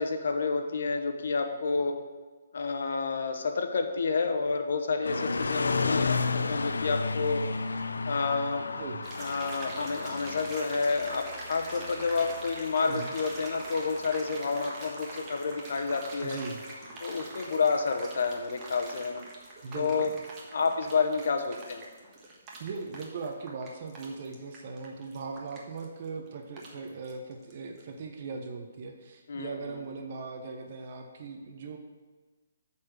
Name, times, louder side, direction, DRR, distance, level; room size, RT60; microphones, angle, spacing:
voice 1, 0.0-2.0 2.5-7.5 8.1-8.7 9.2-16.4 17.0-19.2 19.7-20.1 20.5-21.8 29.3-29.8, left 4 dB, 65° left, 5 dB, 1.0 m, -29 dB
sound 1, 5.0-19.1, left 4 dB, 85° left, 0.5 m, -35 dB
sound 2, 9.0-27.5 27.8-27.9, right 2 dB, 25° right, 1.5 m, -44 dB
voice 2, 16.2-16.6 19.6-20.1 22.6-31.8, right 4 dB, 50° right, 3 dB, 1.0 m, -39 dB
8.4 x 4.3 x 6.5 m, 1.3 s
hypercardioid pair, 150°, 0 cm